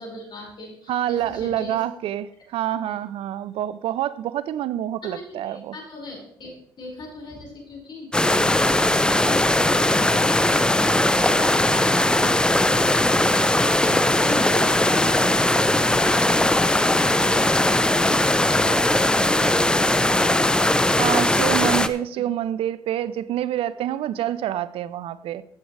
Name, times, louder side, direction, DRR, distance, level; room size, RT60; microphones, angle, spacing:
voice 1, 0.0-1.8 2.9-3.0 5.0-21.8 22.1-22.3, left 1 dB, 50° left, -2 dB, 5.4 m, -40 dB
voice 2, 0.9-5.8 21.0-25.4, right 12 dB, 65° right, 16 dB, 0.5 m, -27 dB
sound 1, 8.1-21.9, left 1 dB, 10° left, 0.7 m, -19 dB
15.0 x 7.9 x 3.3 m, 0.64 s
hypercardioid pair, 60°, 10 cm